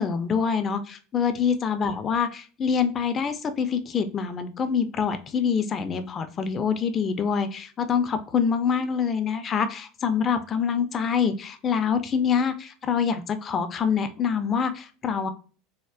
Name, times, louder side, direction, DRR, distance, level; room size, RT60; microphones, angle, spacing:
voice 1, 0.0-15.3, left 6 dB, 35° left, 10 dB, 0.3 m, -25 dB
3.5 x 2.0 x 2.3 m, 0.38 s
figure-of-eight pair, 75°, 0 cm